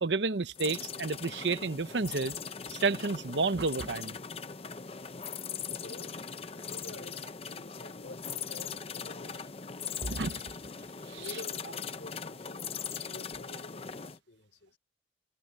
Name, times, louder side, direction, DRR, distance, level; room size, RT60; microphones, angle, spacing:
voice 1, 0.0-2.3 2.7-4.2 10.1-10.4 11.1-11.2, right 3 dB, 75° right, 0.9 m, -30 dB
sound 1, 0.5-14.2, left 6 dB, 30° left, 0.7 m, -40 dB
voice 2, 5.7-6.2 6.5-10.1 11.1-14.8, left 2 dB, 70° left, 3.8 m, -50 dB
head